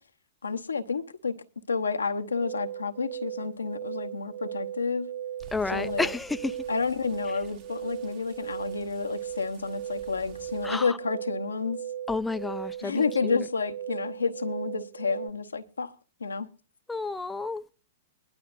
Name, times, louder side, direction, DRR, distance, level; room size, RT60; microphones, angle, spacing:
voice 1, 0.4-1.3 1.7-5.1 5.7-6.1 6.7-11.8 12.8-15.9 16.2-16.5, left 4 dB, 90° left, 0.9 m, -30 dB
sound 1, 2.3-15.3, right 10 dB, 25° right, 0.7 m, -38 dB
sound 2, 5.4-10.8, right 7 dB, 50° right, 2.4 m, -52 dB
voice 2, 5.5-6.6 10.6-11.0 12.1-13.4 16.9-17.6, left 3 dB, 10° left, 0.5 m, -31 dB
20.5 x 11.5 x 2.5 m
hypercardioid pair, 110°, 0 cm